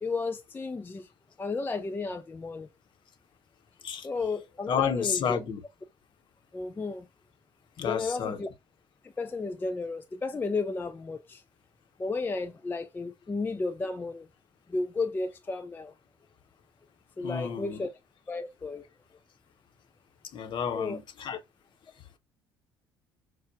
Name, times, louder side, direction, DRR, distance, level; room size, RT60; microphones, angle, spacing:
voice 1, 0.0-1.1 1.4-2.7 4.0-5.4 6.5-7.1 7.8-8.5 9.2-11.4 12.0-14.3 14.7-15.9 17.2-17.9 18.3-18.9 20.7-21.0, left 3 dB, 15° left, 0.4 m, -33 dB
voice 2, 4.7-5.6 7.8-8.4 17.2-17.9 20.3-21.4, left 7 dB, 45° left, 0.8 m, -31 dB
6.1 x 2.1 x 2.5 m
figure-of-eight pair, 55°, 11 cm